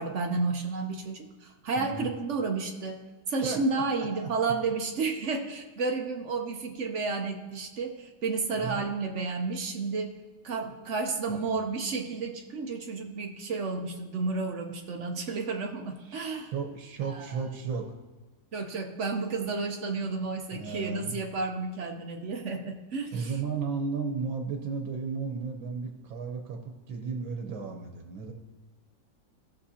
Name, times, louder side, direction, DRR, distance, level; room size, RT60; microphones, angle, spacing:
voice 1, 0.0-3.0 3.3-10.2 10.4-16.5 17.1-17.5 18.5-23.3, right 4 dB, 55° right, 3 dB, 0.8 m, -31 dB
voice 2, 3.9-4.3 8.6-8.9 11.3-11.4 16.0-16.2 16.5-17.9 20.5-21.2 23.1-28.3, right 5 dB, 80° right, 2 dB, 1.7 m, -34 dB
15.5 x 6.6 x 2.8 m, 1.3 s
omnidirectional pair, 2.1 m